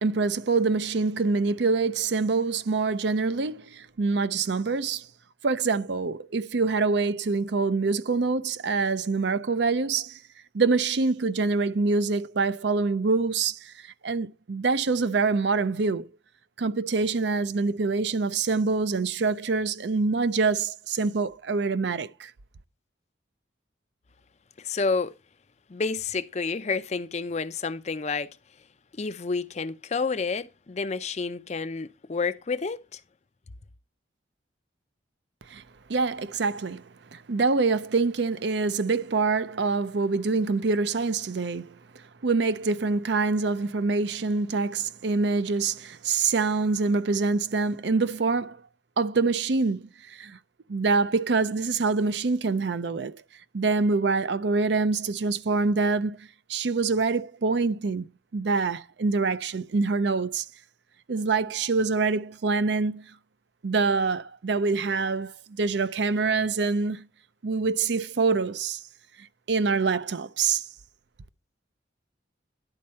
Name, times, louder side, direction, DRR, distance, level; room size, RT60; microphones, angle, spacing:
voice 1, 0.0-5.1 5.4-10.2 10.5-16.1 16.6-22.3 35.5-35.6 35.9-36.8 37.1-48.6 49.0-50.4 50.7-53.1 53.5-60.5 61.1-63.1 63.6-67.1 67.4-68.8 69.2-70.6, right 4 dB, 65° right, 0.5 m, -25 dB
voice 2, 24.6-25.1 25.7-28.3 29.0-33.0, left 4 dB, 35° left, 0.5 m, -29 dB
11.0 x 4.3 x 5.5 m
head